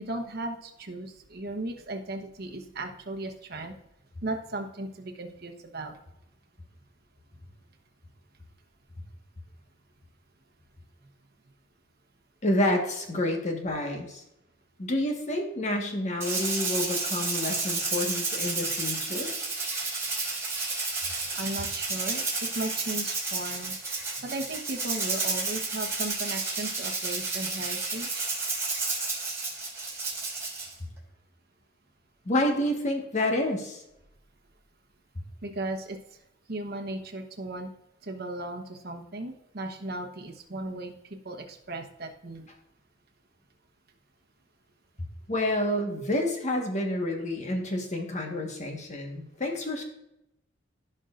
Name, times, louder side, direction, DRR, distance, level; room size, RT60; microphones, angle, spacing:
voice 1, 0.0-3.7 4.2-6.0 21.3-22.3 22.5-23.7 24.2-28.3 35.4-36.0 36.5-37.7 38.0-40.9 41.2-42.5, right 2 dB, 55° right, 4 dB, 1.1 m, -36 dB
voice 2, 12.4-14.2 14.8-19.3 32.2-33.8 45.3-49.8, left 1 dB, 40° left, 2 dB, 1.5 m, -29 dB
Rattle (instrument), 16.2-30.7, right 3 dB, 15° right, 2.9 m, -31 dB
15.5 x 5.4 x 2.5 m, 0.85 s
head